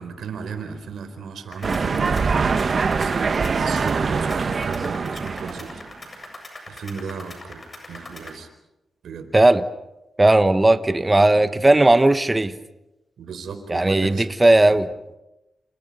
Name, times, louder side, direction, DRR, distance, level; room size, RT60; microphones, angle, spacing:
voice 1, 0.0-2.2 2.7-5.7 6.7-7.6 7.9-8.5 9.0-9.3 11.3-11.4 13.2-14.3 14.7-14.8, right 5 dB, 85° right, 4.3 m, -35 dB
sound 1, 1.5-8.4, left 1 dB, 25° left, 7.7 m, -41 dB
sound 2, 1.6-5.9, right 5 dB, 45° right, 1.3 m, -23 dB
voice 2, 9.3-9.6 10.2-12.5 13.7-14.9, right 2 dB, 15° right, 1.1 m, -16 dB
28.5 x 28.0 x 5.5 m
cardioid pair, 100°, 0 cm